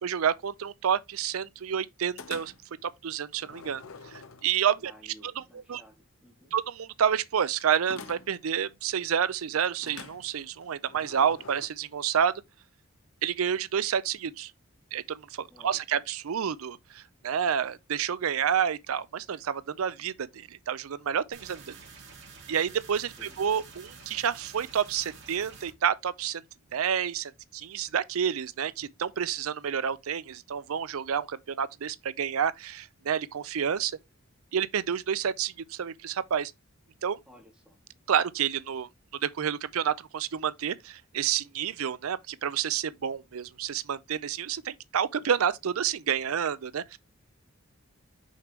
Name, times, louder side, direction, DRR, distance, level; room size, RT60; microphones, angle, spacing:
voice 1, 0.0-2.5 2.8-4.9 5.4-5.5 5.7-5.8 6.5-12.3 13.2-14.5 14.9-21.7 22.5-26.4 26.7-34.0 34.5-36.5 37.0-37.2 38.1-38.9 39.2-47.0, right 8 dB, 90° right, 0.5 m, -29 dB
sound 1, 2.2-2.8 3.3-4.8 7.9-8.5 9.8-11.7, left 5 dB, 85° left, 1.0 m, -46 dB
voice 2, 4.8-6.5 15.5-16.0 23.2-23.4 37.3-37.8, left 1 dB, 5° right, 2.4 m, -55 dB
sound 2, 21.3-25.7, right 5 dB, 55° right, 2.6 m, -49 dB
6.4 x 5.1 x 3.1 m
head